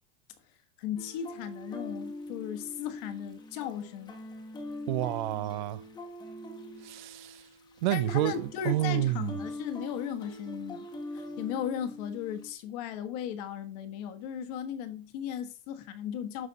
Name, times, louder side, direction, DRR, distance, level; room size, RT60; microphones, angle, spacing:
voice 1, 0.8-4.1 7.9-10.9 11.1-16.5, left 9 dB, 40° left, 1.2 m, -36 dB
sound 1, 1.0-12.5, left 1 dB, 15° left, 1.1 m, -43 dB
voice 2, 4.9-5.8 6.8-7.4 7.8-9.3, right 15 dB, 50° right, 0.5 m, -29 dB
12.5 x 4.1 x 4.0 m
supercardioid pair, 170°, 30 cm